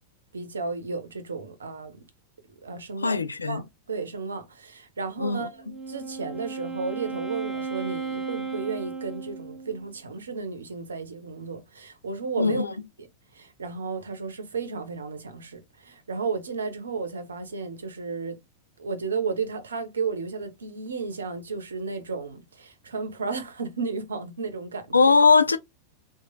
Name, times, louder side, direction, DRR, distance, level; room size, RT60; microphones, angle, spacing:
voice 1, 0.3-2.0 2.6-3.2 3.5-13.1 13.3-18.4 18.8-25.1, right 4 dB, 70° right, 0.7 m, -33 dB
voice 2, 3.0-3.6 5.2-5.5 12.4-12.7 24.9-25.6, left 4 dB, 75° left, 0.3 m, -20 dB
Wind instrument woodwind instrument, 5.5-9.9, right 4 dB, 10° right, 0.8 m, -35 dB
2.9 x 2.4 x 2.4 m
figure-of-eight pair, 90°, 0 cm